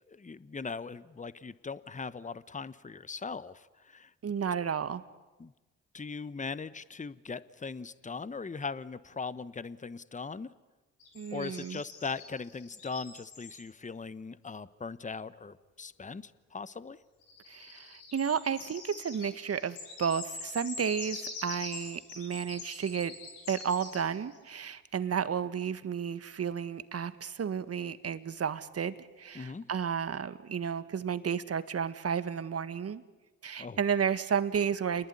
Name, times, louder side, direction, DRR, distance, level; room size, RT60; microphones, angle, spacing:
voice 1, 0.1-4.1 5.4-5.5 5.9-10.5 11.3-17.0 29.3-29.7 33.6-33.8, left 4 dB, 25° left, 16 dB, 1.2 m, -40 dB
voice 2, 4.2-5.0 11.2-11.8 17.5-23.1 23.5-33.0 33.4-35.1, right 7 dB, 50° right, 13 dB, 1.8 m, -32 dB
sound 1, 11.0-13.6 17.2-24.4, left 4 dB, 90° left, 6.3 m, -44 dB
28.5 x 20.5 x 9.8 m, 1.2 s
hypercardioid pair, 50°, 31 cm